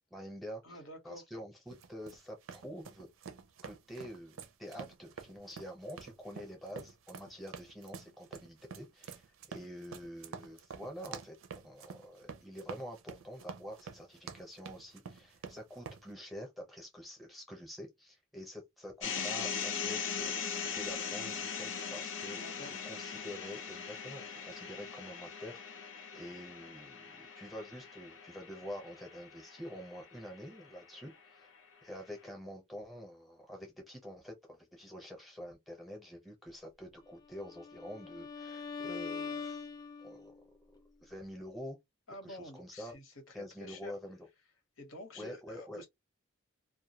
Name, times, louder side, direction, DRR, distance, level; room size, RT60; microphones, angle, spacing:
voice 1, 0.1-0.8 1.0-3.1 3.6-11.3 11.6-20.3 20.7-31.5 31.8-39.7 40.0-40.4 41.0-41.8 42.2-42.9 43.3-44.2 45.1-45.8, equal, ahead, 0.7 m, -47 dB
voice 2, 0.6-1.2 22.3-22.7 42.1-43.9 44.8-45.9, left 1 dB, 85° left, 1.0 m, -49 dB
sound 1, 1.7-16.0, right 6 dB, 90° right, 0.5 m, -48 dB
sound 2, 19.0-31.1, left 6 dB, 65° left, 0.7 m, -40 dB
Bowed string instrument, 37.3-40.4, left 5 dB, 20° left, 0.3 m, -42 dB
2.3 x 2.1 x 2.8 m
head